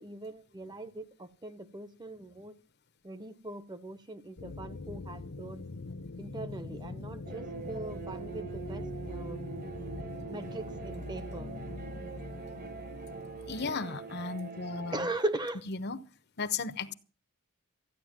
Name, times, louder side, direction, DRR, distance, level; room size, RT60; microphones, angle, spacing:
voice 1, 0.0-2.5 3.0-5.6 6.2-9.4 10.3-11.5 14.9-15.6, right 2 dB, 20° right, 1.0 m, -39 dB
sound 1, 4.4-13.6, left 2 dB, 85° left, 0.9 m, -43 dB
sound 2, 7.2-15.1, right 5 dB, 45° right, 1.5 m, -43 dB
voice 2, 13.5-15.1 15.7-16.0 16.4-16.9, left 4 dB, 50° left, 1.0 m, -35 dB
14.0 x 10.0 x 7.4 m
head